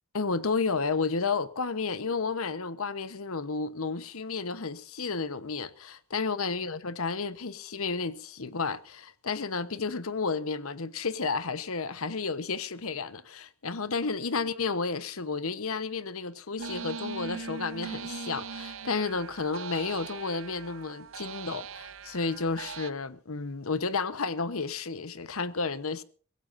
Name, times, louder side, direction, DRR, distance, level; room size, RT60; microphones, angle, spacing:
voice 1, 0.1-26.0, left 4 dB, 70° left, 1.0 m, -32 dB
sound 1, 16.6-22.9, right 5 dB, 60° right, 0.8 m, -40 dB
24.5 x 16.0 x 2.6 m
head